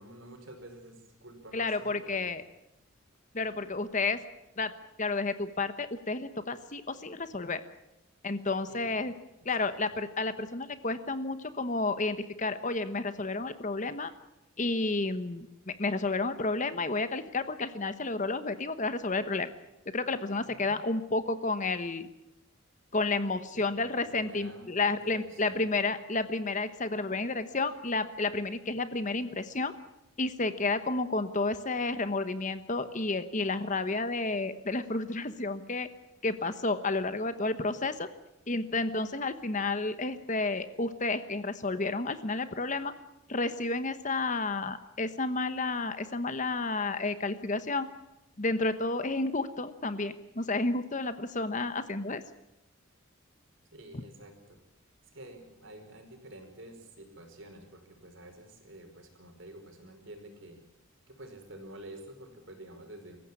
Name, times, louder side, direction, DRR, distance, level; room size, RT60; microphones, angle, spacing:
voice 1, 0.0-2.3 8.7-9.0 9.4-9.7 20.4-20.8 23.5-24.8 25.0-25.7 53.7-54.6 55.1-60.6 61.1-63.2, right 1 dB, 60° right, 5 dB, 5.1 m, -49 dB
voice 2, 1.5-2.4 3.3-4.2 4.6-4.7 5.0-7.6 8.2-9.1 9.4-14.1 14.6-19.5 19.9-22.1 22.9-29.7 30.2-35.9 36.2-38.1 38.5-42.9 43.3-47.9 48.4-52.2 53.9-54.0, left 3 dB, 35° left, 11 dB, 1.1 m, -31 dB
25.0 x 15.0 x 9.8 m, 0.91 s
head